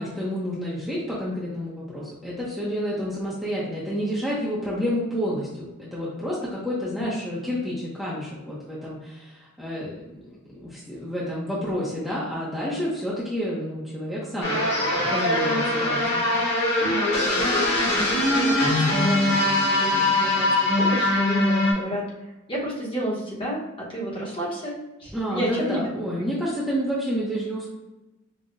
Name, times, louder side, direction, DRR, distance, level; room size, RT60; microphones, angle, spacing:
voice 1, 0.0-5.7 5.9-14.6 15.0-16.2 25.1-27.6, equal, ahead, -8 dB, 0.7 m, -29 dB
sound 1, 14.4-21.7, left 1 dB, 50° left, 1.4 m, -22 dB
voice 2, 16.8-17.5 18.3-22.1 22.5-25.8, right 1 dB, 25° left, -5 dB, 1.0 m, -31 dB
5.4 x 2.2 x 2.5 m, 1.0 s
head